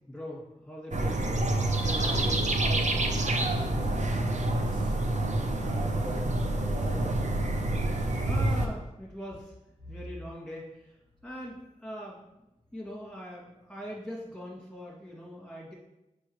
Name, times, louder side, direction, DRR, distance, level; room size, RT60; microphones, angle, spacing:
voice 1, 0.1-2.5 8.2-9.5 9.9-10.9 11.2-12.2 12.7-15.7, equal, 5° left, -6 dB, 2.4 m, -41 dB
sound 1, 0.9-8.7, right 1 dB, 60° right, 0.7 m, -27 dB
voice 2, 3.2-4.9 5.6-7.3 9.8-10.0, equal, 35° right, -3 dB, 1.7 m, -42 dB
7.9 x 4.9 x 3.1 m, 0.93 s
wide cardioid pair, 75°, 14 cm